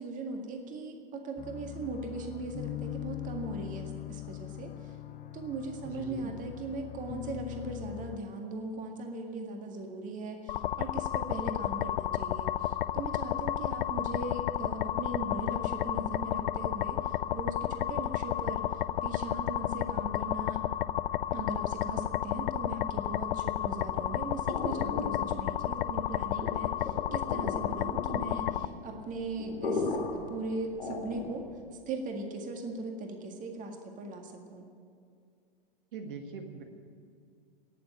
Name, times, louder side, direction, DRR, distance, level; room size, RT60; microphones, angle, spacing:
voice 1, 0.0-5.0 5.3-18.6 19.0-20.6 21.3-31.5 31.9-34.7, right 2 dB, 25° right, 3 dB, 1.9 m, -39 dB
sound 1, 1.4-8.2, left 13 dB, 25° left, 0.9 m, -41 dB
voice 2, 5.8-6.3 35.9-36.6, right 5 dB, 60° right, 4 dB, 1.7 m, -41 dB
sound 2, 10.5-28.7, left 11 dB, 65° left, 0.5 m, -32 dB
sound 3, 23.7-31.6, left 3 dB, 80° left, 2.7 m, -38 dB
18.5 x 7.0 x 10.0 m, 2.3 s
hypercardioid pair, 110°, 29 cm